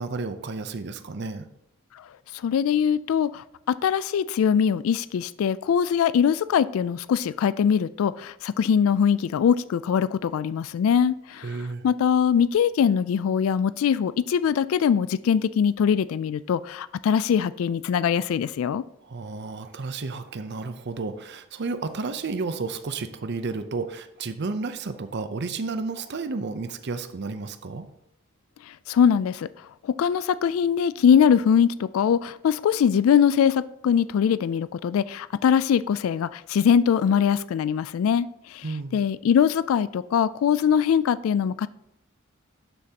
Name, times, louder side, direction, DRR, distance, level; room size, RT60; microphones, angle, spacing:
voice 1, 0.0-1.5 11.4-11.9 19.0-27.9 38.6-38.9, right 3 dB, 55° right, 10 dB, 0.6 m, -32 dB
voice 2, 2.3-11.6 11.8-18.8 28.7-29.5 29.8-38.6 38.9-41.7, left 7 dB, 85° left, 16 dB, 0.3 m, -22 dB
11.5 x 7.0 x 2.9 m, 0.83 s
head